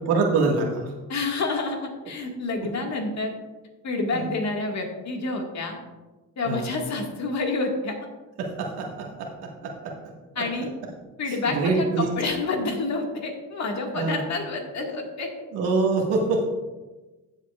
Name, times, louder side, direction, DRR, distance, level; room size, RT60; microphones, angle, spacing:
voice 1, 0.0-0.9 4.1-4.3 6.4-6.7 8.4-10.0 11.3-12.1 14.0-14.2 15.5-16.5, right 3 dB, 90° right, 0 dB, 1.8 m, -25 dB
voice 2, 1.1-1.8 2.1-3.4 3.8-5.8 6.4-7.9 10.4-10.7 11.2-15.3, left 3 dB, 45° left, 2 dB, 1.9 m, -28 dB
14.5 x 7.7 x 2.4 m, 1.2 s
cardioid pair, 110°, 38 cm